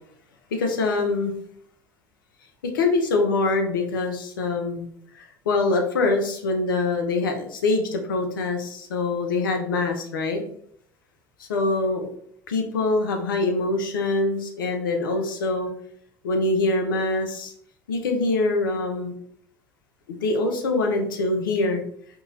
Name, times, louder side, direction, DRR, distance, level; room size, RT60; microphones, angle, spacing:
voice 1, 0.5-1.3 2.6-4.9 5.1-10.4 11.5-12.1 12.5-15.7 16.2-17.5 17.9-19.1 20.1-21.8, left 3 dB, 80° left, 4 dB, 0.5 m, -24 dB
2.8 x 2.6 x 2.8 m, 0.67 s
hypercardioid pair, 70°, 11 cm